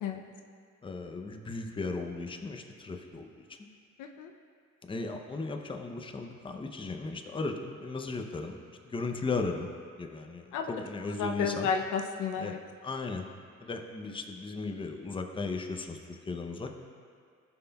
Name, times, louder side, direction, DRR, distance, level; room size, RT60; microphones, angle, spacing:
voice 1, 0.8-3.6 4.8-8.6 8.8-9.7 10.0-11.7 12.4-12.6 12.8-13.2 13.6-16.7, left 3 dB, 15° left, 4 dB, 0.6 m, -36 dB
voice 2, 4.0-4.3 10.5-10.7 11.2-12.6, left 6 dB, 85° left, 4 dB, 0.6 m, -32 dB
14.0 x 5.6 x 2.3 m, 2.2 s
cardioid pair, 90°, 30 cm